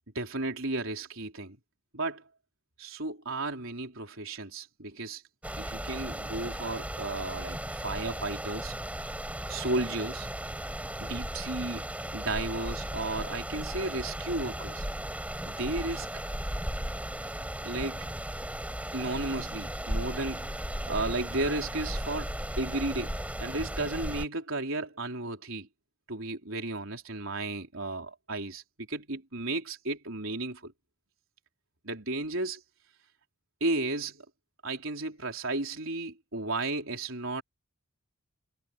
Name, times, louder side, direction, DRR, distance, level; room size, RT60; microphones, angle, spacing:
voice 1, 0.2-1.6 1.9-2.2 2.8-5.2 5.6-8.7 9.5-10.3 11.0-11.8 12.1-14.9 15.5-16.2 17.6-18.1 18.9-20.5 20.9-25.7 26.1-30.7 31.8-32.6 33.6-34.2 34.6-37.4, right 2 dB, 65° right, 3.8 m, -34 dB
sound 1, 5.4-24.2, right 1 dB, 5° right, 6.1 m, -36 dB
head